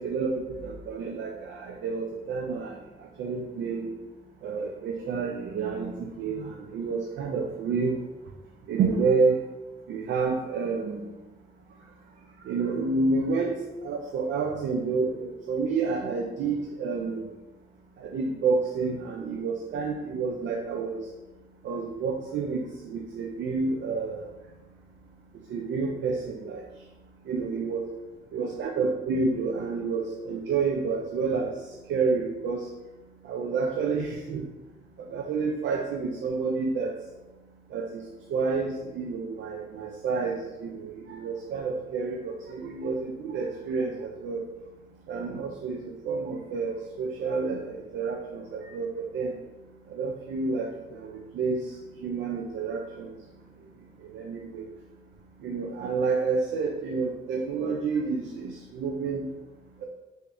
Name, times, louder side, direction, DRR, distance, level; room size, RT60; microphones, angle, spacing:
voice 1, 0.0-3.9 4.4-7.9 8.7-9.4 9.9-11.1 12.4-17.3 18.0-21.1 21.6-24.2 25.5-26.7 27.3-27.9 28.3-32.7 33.2-34.4 35.0-36.9 37.7-38.0 38.3-44.4 45.1-49.3 49.9-53.2 54.0-54.7 55.4-59.3, right 4 dB, 65° right, 1 dB, 0.5 m, -29 dB
3.3 x 2.7 x 3.4 m, 1.1 s
cardioid pair, 90°, 20 cm